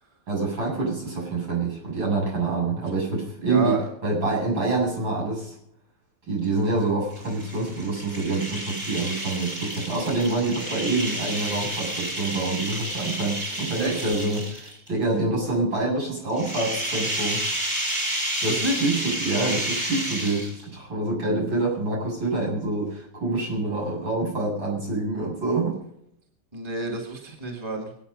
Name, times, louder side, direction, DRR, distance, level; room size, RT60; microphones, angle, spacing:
voice 1, 0.3-3.8 4.0-5.6 6.3-17.4 18.4-25.8, right 3 dB, 60° right, -4 dB, 8.5 m, -26 dB
voice 2, 3.4-3.8 13.8-14.2 18.5-18.8 26.5-27.9, right 2 dB, 10° right, -1 dB, 2.4 m, -30 dB
sound 1, 7.1-14.9 16.3-20.8, right 1 dB, 30° right, 6.9 m, -30 dB
24.0 x 9.1 x 5.6 m, 0.74 s
omnidirectional pair, 2.4 m